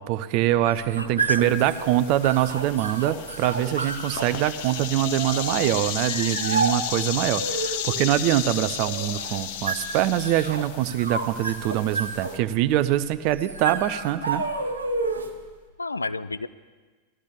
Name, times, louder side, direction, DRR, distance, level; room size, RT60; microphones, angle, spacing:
voice 1, 0.0-14.5, right 13 dB, 45° right, 13 dB, 0.5 m, -24 dB
sound 1, 0.5-15.5, right 3 dB, 75° right, 1.2 m, -31 dB
voice 2, 0.7-1.7 15.8-16.5, left 3 dB, 80° left, 14 dB, 0.4 m, -33 dB
sound 2, 1.4-12.4, left 10 dB, 50° left, 0.7 m, -34 dB
19.5 x 13.0 x 3.5 m, 1.4 s
figure-of-eight pair, 90°, 0 cm